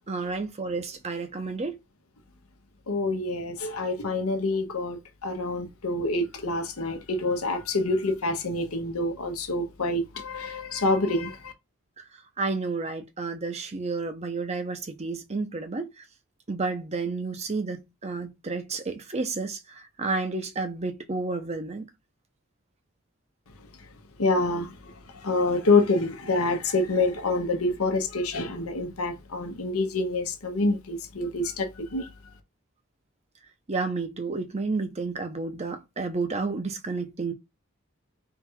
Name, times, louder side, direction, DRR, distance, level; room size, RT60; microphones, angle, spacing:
voice 1, 0.0-1.8 12.4-16.0 16.5-19.6 20.0-21.9 33.7-37.3, right 3 dB, 30° right, 0.7 m, -31 dB
voice 2, 2.9-11.5 24.2-24.8 25.2-32.1, left 2 dB, 85° left, 0.9 m, -27 dB
3.7 x 2.4 x 4.5 m
head